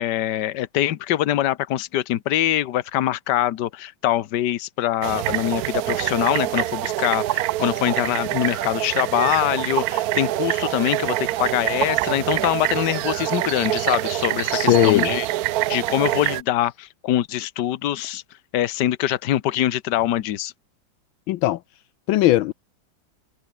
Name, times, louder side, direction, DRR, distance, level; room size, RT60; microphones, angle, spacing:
voice 1, 0.0-15.3 15.7-18.2 18.5-20.5, left 13 dB, 65° left, 1.5 m, -24 dB
sound 1, 5.0-16.4, right 15 dB, 80° right, 0.8 m, -25 dB
voice 2, 14.5-15.1 21.3-21.6 22.1-22.5, left 15 dB, 80° left, 1.4 m, -18 dB
omnidirectional pair, 2.2 m